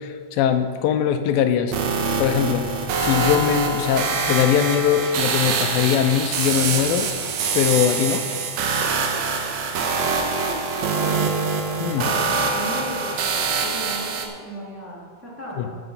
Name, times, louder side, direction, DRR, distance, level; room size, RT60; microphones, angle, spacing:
voice 1, 0.0-1.7 2.2-2.7 3.0-7.1 7.6-8.3 11.8-12.0 15.6-15.7, left 9 dB, 85° left, 8 dB, 2.4 m, -21 dB
sound 1, 1.7-14.3, right 4 dB, 70° right, 1.7 m, -24 dB
sound 2, 5.0-8.6 9.2-9.3, equal, 20° left, 3.8 m, -39 dB
voice 2, 10.3-11.3 11.9-15.7, right 1 dB, 5° right, -5 dB, 1.6 m, -35 dB
14.0 x 6.6 x 5.5 m, 2.1 s
omnidirectional pair, 4.1 m